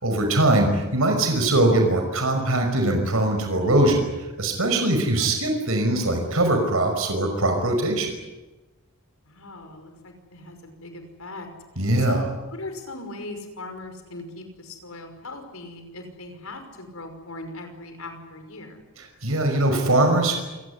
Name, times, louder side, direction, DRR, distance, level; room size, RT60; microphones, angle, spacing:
voice 1, 0.0-8.1 11.8-12.2 19.2-20.4, right 1 dB, 80° right, 4 dB, 5.5 m, -21 dB
voice 2, 9.3-11.5 12.0-18.8, left 2 dB, 85° left, 6 dB, 5.6 m, -39 dB
27.5 x 18.5 x 9.9 m, 1.1 s
head